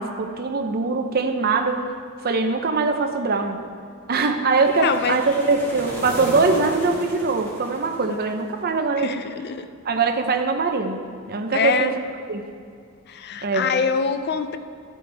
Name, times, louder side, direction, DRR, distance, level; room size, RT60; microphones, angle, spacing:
voice 1, 0.0-1.8 2.2-3.6 4.1-9.2 9.8-11.0 11.3-11.9 12.3-12.5 13.4-13.7, right 4 dB, 45° right, 5 dB, 0.7 m, -22 dB
sound 1, 4.5-8.7, equal, 10° left, 1.8 m, -35 dB
voice 2, 4.8-5.2 8.1-8.2 9.0-9.7 11.5-11.9 13.1-14.6, left 6 dB, 50° left, 10 dB, 0.4 m, -24 dB
13.0 x 8.3 x 3.5 m, 2.3 s
head